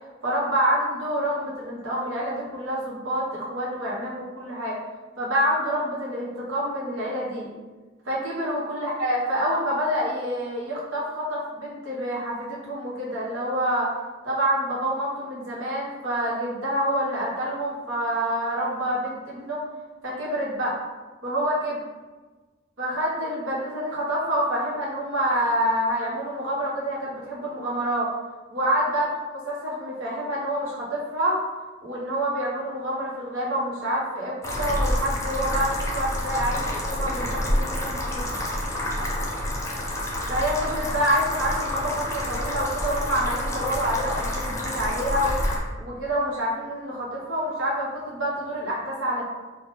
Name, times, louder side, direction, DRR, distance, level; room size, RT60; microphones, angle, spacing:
voice 1, 0.2-4.8 5.2-7.5 8.0-13.9 14.2-19.6 20.0-20.7 21.2-21.8 22.8-28.1 28.5-31.4 31.8-38.3 40.3-45.4 45.8-49.2, equal, 85° right, -5 dB, 1.1 m, -27 dB
sound 1, 34.4-45.6, left 1 dB, 15° left, 0.5 m, -28 dB
3.2 x 2.3 x 3.5 m, 1.3 s
head